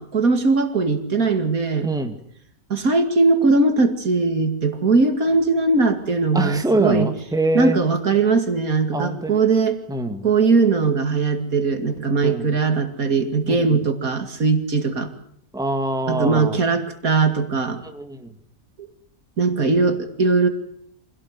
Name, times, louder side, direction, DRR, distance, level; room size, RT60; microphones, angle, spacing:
voice 1, 0.0-1.9 2.7-7.1 7.5-9.8 10.2-15.1 16.1-17.8 19.4-20.5, right 4 dB, 65° right, 8 dB, 2.7 m, -20 dB
voice 2, 1.8-2.2 6.3-7.8 8.9-9.4 9.9-10.3 12.2-12.5 13.5-13.8 15.5-16.6 17.8-18.3, right 1 dB, ahead, 6 dB, 1.9 m, -24 dB
25.5 x 17.5 x 9.6 m, 0.67 s
omnidirectional pair, 1.6 m